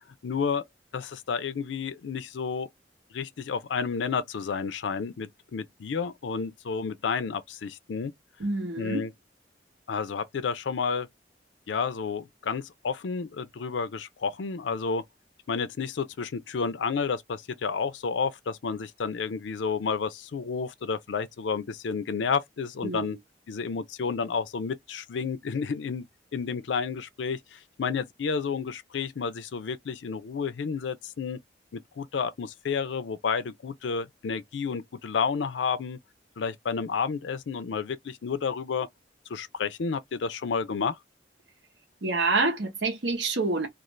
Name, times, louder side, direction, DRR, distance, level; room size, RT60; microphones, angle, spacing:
voice 1, 0.2-0.6 0.9-2.7 3.1-8.1 8.8-9.1 9.9-11.1 11.7-15.0 15.5-23.2 23.5-26.0 26.3-31.4 31.7-36.0 36.4-38.9 39.3-41.0, left 5 dB, 90° left, 0.4 m, -31 dB
voice 2, 8.4-9.1 22.8-23.2 42.0-43.7, right 3 dB, 85° right, 1.0 m, -27 dB
2.5 x 2.4 x 3.0 m
head